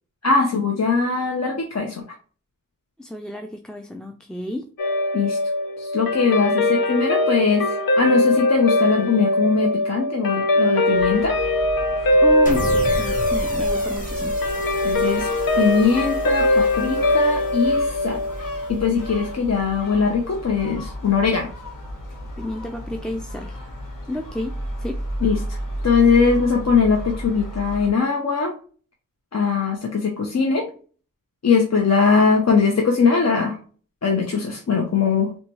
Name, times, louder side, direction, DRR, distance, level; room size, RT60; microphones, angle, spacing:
voice 1, 0.2-2.0 5.1-5.4 5.8-11.4 14.8-15.3 15.6-18.2 18.7-21.5 25.2-25.6 25.8-28.5 29.3-30.7 31.4-33.6 34.0-35.4, left 5 dB, 50° left, 1 dB, 0.7 m, -21 dB
voice 2, 3.0-4.7 12.2-14.4 22.4-23.6 24.1-25.0, left 1 dB, ahead, 3 dB, 0.3 m, -31 dB
Guitar, 4.8-19.4, left 1 dB, 85° left, 0.6 m, -21 dB
Gull seagull, 10.9-27.9, equal, 65° left, 1.4 m, -34 dB
sound 1, 12.5-18.8, equal, 25° left, 1.2 m, -34 dB
3.9 x 2.3 x 2.9 m, 0.41 s
cardioid pair, 45°, 34 cm